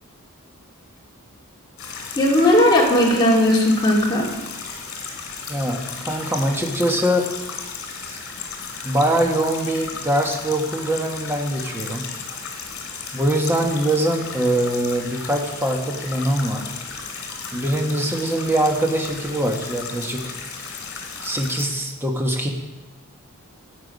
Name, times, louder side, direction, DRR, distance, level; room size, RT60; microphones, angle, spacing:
sound 1, 1.8-21.7, left 5 dB, 70° left, 2.4 m, -35 dB
voice 1, 2.2-4.3, left 1 dB, 20° left, -3 dB, 2.1 m, -16 dB
voice 2, 5.5-7.3 8.1-8.2 8.8-12.1 13.1-16.7 17.5-20.8 21.2-22.5, right 1 dB, 10° right, 2 dB, 1.2 m, -23 dB
11.0 x 8.5 x 5.3 m, 1.1 s
head